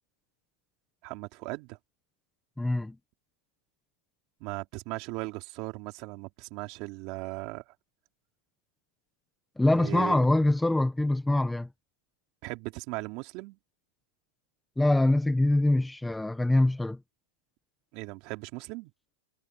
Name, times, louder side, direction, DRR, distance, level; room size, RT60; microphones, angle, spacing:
voice 1, 1.0-1.8 4.4-7.7 9.7-10.2 12.4-13.6 17.9-18.9, right 24 dB, 45° right, 3.7 m, -38 dB
voice 2, 2.6-3.0 9.6-11.7 14.8-17.0, left 1 dB, 5° left, 1.5 m, -24 dB
hypercardioid pair, 140°, 0 cm